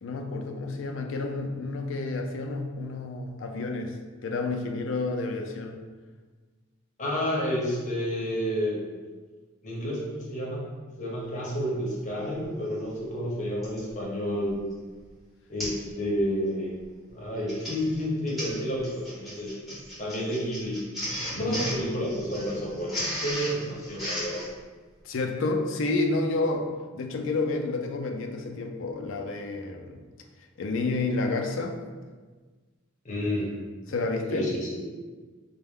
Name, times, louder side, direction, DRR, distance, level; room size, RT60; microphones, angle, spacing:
voice 1, 0.0-4.0 4.2-5.8 21.4-21.6 25.0-30.0 30.6-31.8 33.9-34.5, left 3 dB, 65° left, 3 dB, 0.4 m, -30 dB
voice 2, 7.0-8.8 9.6-10.7 11.0-14.6 15.5-16.7 17.1-19.6 20.0-20.8 21.4-24.4 33.0-33.5 34.3-34.9, equal, 35° left, -5 dB, 0.8 m, -30 dB
Printer, 12.4-12.5 13.6-13.9 14.5-14.7 15.0-15.1 15.6-15.9 16.2-16.5 17.2-24.5, equal, ahead, 1.1 m, -35 dB
4.2 x 2.2 x 3.5 m, 1.4 s
head